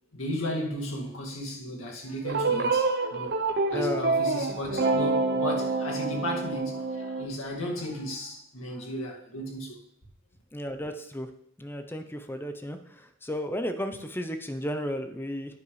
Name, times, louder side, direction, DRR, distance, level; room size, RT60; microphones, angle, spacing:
voice 1, 0.1-3.4 3.7-9.8, equal, 70° left, 2.1 m, -35 dB
sound 1, 2.2-7.3, right 3 dB, 50° right, 0.7 m, -27 dB
voice 2, 3.7-4.0 10.5-11.3 11.6-12.8 13.2-15.6, equal, 10° left, 0.6 m, -33 dB
10.5 x 9.6 x 3.2 m
head